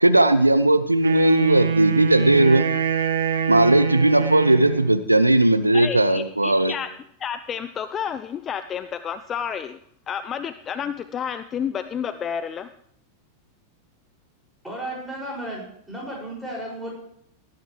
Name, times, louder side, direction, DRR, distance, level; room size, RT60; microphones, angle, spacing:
voice 1, 0.0-2.7 3.5-6.7, right 1 dB, 85° right, 12 dB, 0.5 m, -17 dB
Wind instrument woodwind instrument, 1.0-5.0, right 7 dB, 70° right, 1.7 m, -24 dB
voice 2, 5.7-6.9 7.2-9.8 10.1-12.7, left 8 dB, 25° left, 12 dB, 0.5 m, -30 dB
voice 3, 14.6-16.9, right 1 dB, 5° right, -3 dB, 6.1 m, -34 dB
18.0 x 10.5 x 3.3 m, 0.71 s
figure-of-eight pair, 90°, 0 cm